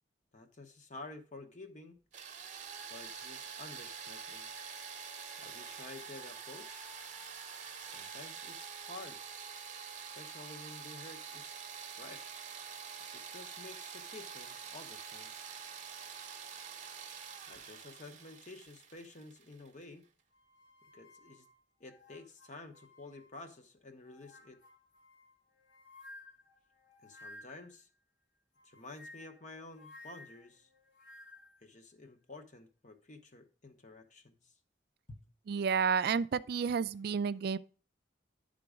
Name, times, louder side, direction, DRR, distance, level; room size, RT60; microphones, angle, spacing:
voice 1, 0.3-2.0 2.9-4.5 5.4-6.9 7.8-9.2 10.2-11.6 12.0-12.4 13.1-15.3 17.5-20.0 20.9-21.4 21.8-24.6 27.0-27.9 28.6-30.7 31.6-34.5 35.1-35.2, left 2 dB, 40° left, 1.0 m, -51 dB
sound 1, 2.1-19.8, right 6 dB, 40° right, 0.9 m, -46 dB
sound 2, 20.3-23.6 24.0-27.8 28.5-31.6, left 2 dB, 80° left, 1.9 m, -56 dB
voice 2, 35.5-37.6, right 6 dB, 55° right, 0.3 m, -31 dB
11.0 x 3.8 x 4.9 m
head